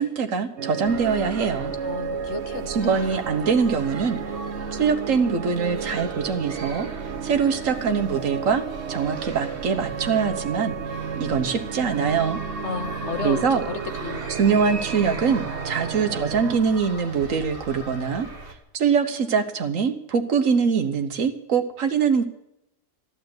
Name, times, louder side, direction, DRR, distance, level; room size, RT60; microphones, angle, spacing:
voice 1, 0.0-1.7 2.7-4.2 4.7-6.9 7.2-8.6 8.9-10.7 11.2-12.4 13.2-13.6 14.4-18.3 18.7-22.3, right 6 dB, 90° right, 7 dB, 1.5 m, -23 dB
sound 1, 0.6-16.6, right 7 dB, 60° right, 1.2 m, -33 dB
sound 2, 0.8-18.5, right 2 dB, 45° right, 2.2 m, -39 dB
voice 2, 1.8-2.9 12.6-14.3, left 5 dB, 65° left, 8 dB, 1.5 m, -33 dB
13.5 x 12.0 x 7.9 m, 0.83 s
omnidirectional pair, 1.3 m